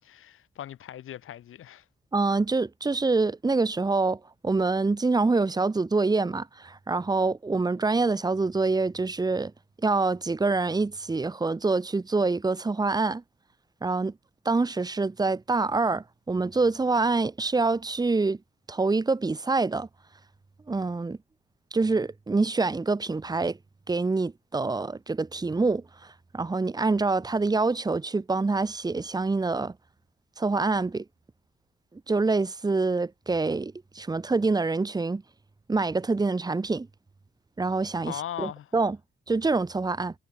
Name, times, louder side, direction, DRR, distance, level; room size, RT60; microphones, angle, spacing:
voice 1, 0.0-1.8 38.0-38.7, left 11 dB, 80° left, 2.1 m, -39 dB
voice 2, 2.1-9.5 9.8-13.2 13.8-14.1 14.4-18.4 18.7-19.9 20.7-21.2 21.7-23.6 23.9-25.8 26.3-29.7 30.4-31.0 32.1-35.2 35.7-36.9 37.6-39.0 39.3-40.1, right 3 dB, 20° right, 0.9 m, -26 dB
cardioid pair, 105°, 21 cm